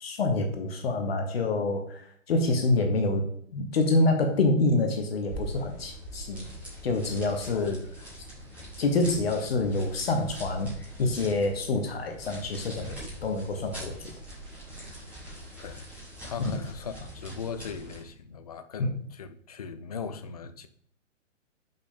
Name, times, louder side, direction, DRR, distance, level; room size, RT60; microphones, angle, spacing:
voice 1, 0.0-3.3 3.5-6.5 6.8-7.8 8.8-13.9 16.4-16.6 18.8-18.9, left 2 dB, 50° left, 1.0 m, -27 dB
sound 1, 5.2-18.1, right 1 dB, 5° right, 2.6 m, -43 dB
voice 2, 16.2-20.7, left 6 dB, 30° left, 0.4 m, -39 dB
6.0 x 5.4 x 3.7 m
figure-of-eight pair, 125°, 38 cm